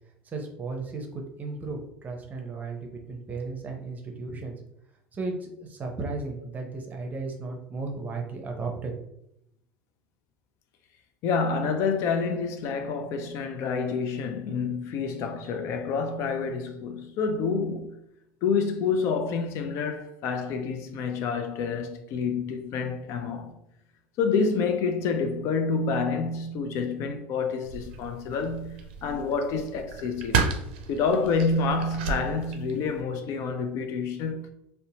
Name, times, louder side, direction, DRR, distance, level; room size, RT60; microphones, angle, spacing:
voice 1, 0.3-4.6 5.1-8.9, right 3 dB, 30° right, 0.6 m, -35 dB
voice 2, 11.2-18.0 18.4-23.5 24.2-30.4 30.9-34.5, left 5 dB, 60° left, 0.4 m, -28 dB
sound 1, 27.6-33.0, right 5 dB, 85° right, 0.4 m, -33 dB
2.7 x 2.1 x 2.8 m
supercardioid pair, 95°, 6 cm